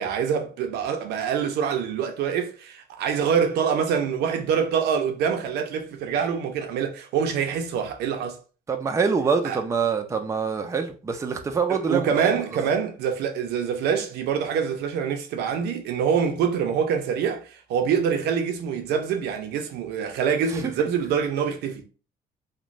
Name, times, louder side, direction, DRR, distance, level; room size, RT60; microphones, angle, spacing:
voice 1, 0.0-8.4 9.4-9.6 11.7-21.8, right 7 dB, 80° right, 0.6 m, -25 dB
voice 2, 8.7-12.3 20.8-20.9, right 5 dB, 15° right, 0.4 m, -25 dB
3.0 x 2.1 x 2.5 m
cardioid pair, 110°, 17 cm